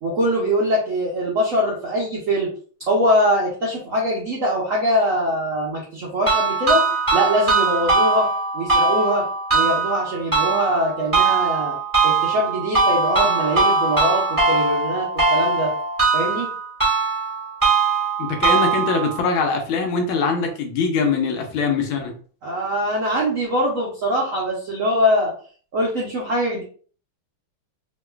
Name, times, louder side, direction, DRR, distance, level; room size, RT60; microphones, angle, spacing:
voice 1, 0.0-2.5 2.9-6.8 7.1-8.3 8.5-9.3 9.5-11.8 12.0-15.7 16.1-16.5 22.4-25.3 25.7-26.6, equal, 75° right, -3 dB, 0.7 m, -22 dB
sound 1, 6.3-19.2, right 4 dB, 10° right, 1.0 m, -21 dB
voice 2, 18.2-22.1, left 5 dB, 75° left, 4 dB, 1.3 m, -22 dB
3.1 x 2.8 x 2.2 m, 0.43 s
omnidirectional pair, 2.4 m